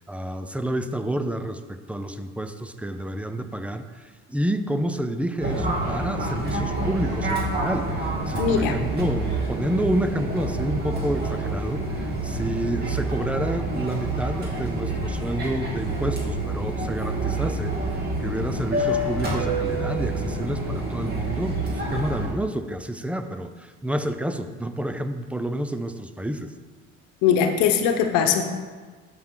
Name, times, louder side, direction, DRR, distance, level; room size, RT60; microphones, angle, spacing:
voice 1, 0.0-26.5, right 1 dB, 5° right, 9 dB, 0.4 m, -29 dB
Fixed-wing aircraft airplane, 5.4-22.3, right 2 dB, 30° right, 2.5 m, -27 dB
voice 2, 8.4-8.8 27.2-28.4, left 7 dB, 85° left, 6 dB, 1.0 m, -20 dB
12.5 x 5.9 x 3.8 m, 1.4 s
cardioid pair, 120°, 32 cm